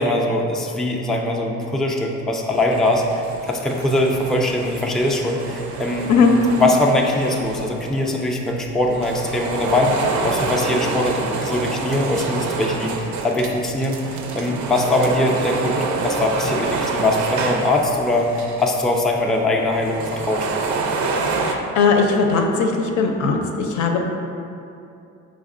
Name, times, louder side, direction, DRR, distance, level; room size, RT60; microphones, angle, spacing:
voice 1, 0.0-6.1 6.5-20.5, left 1 dB, ahead, -1 dB, 0.3 m, -21 dB
sound 1, 2.5-8.2 8.7-18.9 19.2-19.3 19.7-21.5, right 3 dB, 70° right, 0.5 m, -27 dB
voice 2, 21.4-24.0, left 5 dB, 75° left, 3 dB, 0.5 m, -18 dB
5.1 x 3.5 x 2.5 m, 2.6 s
cardioid pair, 90°, 30 cm